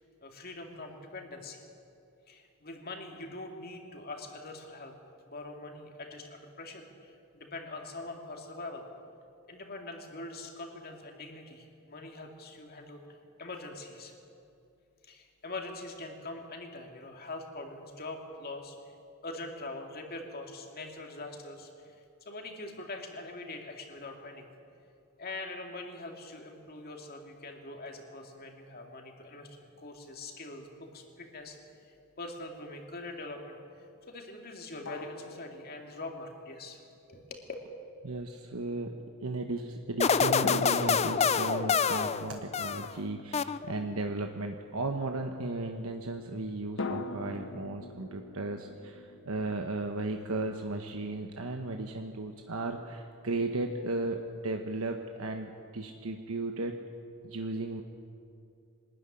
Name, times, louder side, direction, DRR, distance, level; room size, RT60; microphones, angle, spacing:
voice 1, 0.2-1.6 2.3-4.9 5.3-8.8 9.5-14.1 15.0-18.8 19.2-22.0 22.2-24.4 25.2-31.6 31.9-36.8 37.1-37.5, left 2 dB, 45° left, 3 dB, 2.6 m, -43 dB
sound 1, 31.2-31.4 34.9-36.4 40.4-44.1 46.8-49.5, left 2 dB, 60° left, 1.2 m, -42 dB
voice 2, 38.0-56.8 57.2-57.8, right 2 dB, 75° right, 4 dB, 1.1 m, -35 dB
sound 2, 40.0-43.0 43.3-44.0, left 6 dB, 30° left, 0.4 m, -27 dB
23.0 x 13.5 x 9.9 m, 2.5 s
head